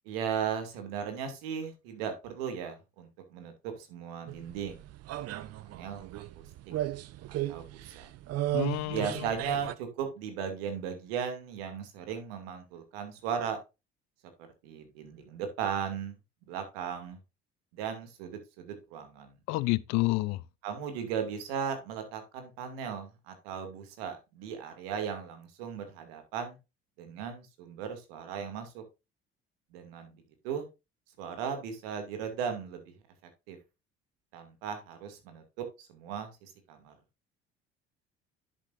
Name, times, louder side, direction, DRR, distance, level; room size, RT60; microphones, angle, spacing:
voice 1, 0.1-6.4 7.5-8.1 8.9-13.6 14.6-16.2 16.5-17.2 17.7-19.3 20.6-26.6 27.0-28.8 29.7-30.7 31.2-32.9 33.5-33.6 34.3-37.0, right 7 dB, 80° right, 2.4 m, -37 dB
sound 1, 4.3-9.7, right 14 dB, 55° right, 0.7 m, -35 dB
voice 2, 8.5-9.3 19.5-20.4, left 21 dB, 65° left, 0.6 m, -29 dB
10.5 x 7.3 x 2.5 m
hypercardioid pair, 60°, 30 cm